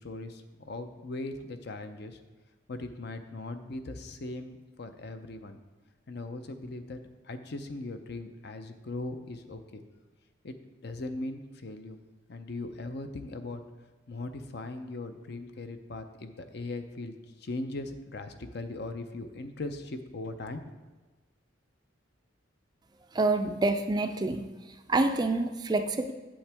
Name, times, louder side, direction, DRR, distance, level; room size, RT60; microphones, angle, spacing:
voice 1, 0.0-2.2 2.7-5.6 6.1-7.0 7.2-9.8 10.4-12.0 12.3-13.6 14.1-20.7, left 2 dB, 55° left, 8 dB, 0.6 m, -39 dB
voice 2, 23.1-24.5 24.9-26.1, right 2 dB, 20° right, 7 dB, 0.4 m, -27 dB
8.7 x 7.4 x 3.5 m, 1.2 s
head